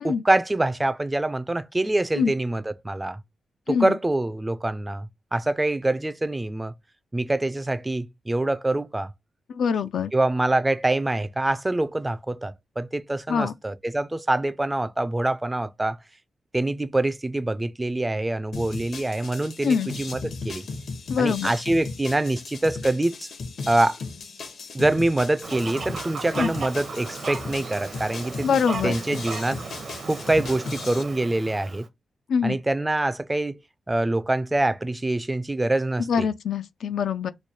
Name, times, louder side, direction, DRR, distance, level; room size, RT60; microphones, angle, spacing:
voice 1, 0.0-3.2 3.7-6.7 7.1-9.1 10.1-16.0 16.5-20.2 20.4-20.6 21.2-23.3 23.7-24.0 24.7-29.8 30.1-31.9 32.4-33.6 33.9-36.3, right 2 dB, 15° right, 0.3 m, -25 dB
voice 2, 9.5-10.1 13.3-13.5 19.6-19.9 21.1-21.5 26.4-26.5 28.4-28.9 32.3-32.6 36.1-37.3, left 6 dB, 80° left, 0.3 m, -24 dB
sound 1, 18.5-31.0, left 4 dB, 65° left, 0.8 m, -37 dB
Fowl, 25.4-31.9, right 4 dB, 60° right, 0.7 m, -36 dB
3.1 x 2.2 x 4.3 m
wide cardioid pair, 110°, 0 cm